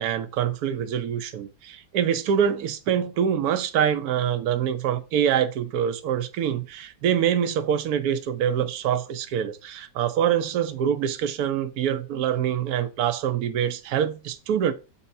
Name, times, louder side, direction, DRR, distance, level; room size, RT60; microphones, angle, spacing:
voice 1, 0.0-14.7, right 9 dB, 65° right, 1.1 m, -25 dB
8.0 x 5.5 x 2.7 m
omnidirectional pair, 2.1 m